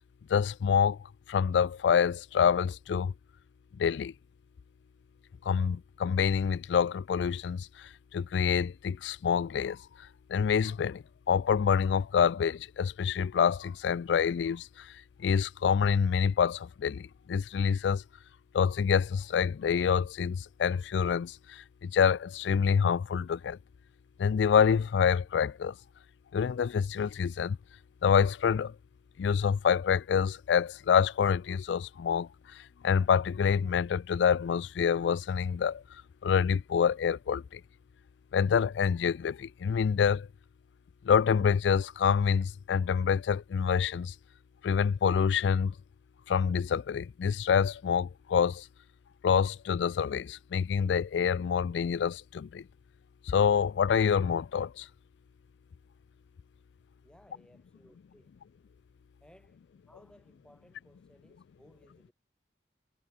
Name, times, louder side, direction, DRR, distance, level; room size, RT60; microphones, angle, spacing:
voice 1, 0.3-1.0 1.3-3.1 3.8-4.1 5.4-9.8 10.3-14.9 15.2-18.0 18.5-23.6 24.2-25.7 26.3-27.6 28.0-28.7 29.2-35.8 36.2-37.6 38.3-40.3 41.0-44.1 44.6-45.7 46.3-48.7 49.2-52.6 53.3-54.9, left 7 dB, 90° left, 0.3 m, -27 dB
voice 2, 57.0-58.3 59.2-59.5 59.9-62.1, equal, 5° left, 4.6 m, -60 dB
head